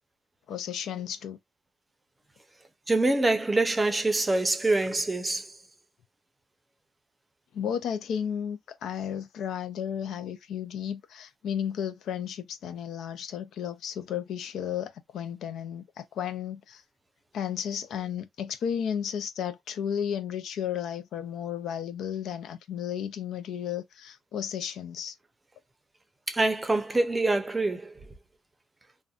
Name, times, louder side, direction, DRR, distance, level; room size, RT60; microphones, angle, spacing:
voice 1, 0.5-1.4 7.5-16.8 17.3-25.2, left 9 dB, 75° left, 0.4 m, -33 dB
voice 2, 2.9-5.5 26.3-27.9, right 2 dB, 20° right, 0.6 m, -25 dB
2.5 x 2.2 x 2.3 m
cardioid pair, 90°, 0 cm